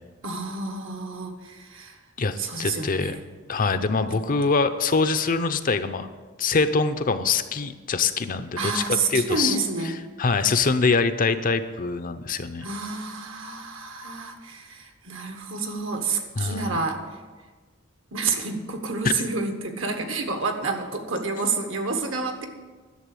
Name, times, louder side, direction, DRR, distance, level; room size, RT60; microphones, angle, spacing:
voice 1, 0.2-2.0 2.4-3.2 8.5-10.0 12.6-17.0 18.1-22.5, right 4 dB, 70° right, 5 dB, 1.5 m, -29 dB
voice 2, 2.2-3.1 3.5-6.1 6.4-8.8 9.1-9.6 10.2-12.7 16.4-16.8 19.0-19.1, left 4 dB, 45° left, 10 dB, 0.6 m, -24 dB
11.5 x 6.9 x 8.4 m, 1.4 s
head